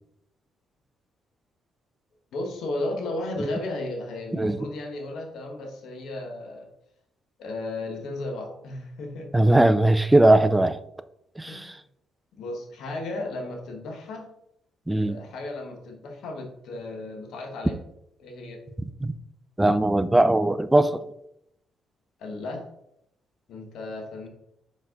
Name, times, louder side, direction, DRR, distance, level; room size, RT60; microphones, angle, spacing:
voice 1, 2.3-6.7 7.4-9.3 11.4-11.7 12.3-14.3 15.0-17.7 18.2-18.6 22.2-22.6 23.5-24.3, left 2 dB, 75° left, 1.5 m, -34 dB
voice 2, 9.3-10.8 11.4-11.8 14.9-15.2 19.0-19.1 19.6-21.0, right 1 dB, 10° right, 0.4 m, -19 dB
5.4 x 4.7 x 3.8 m
cardioid pair, 90°, 0 cm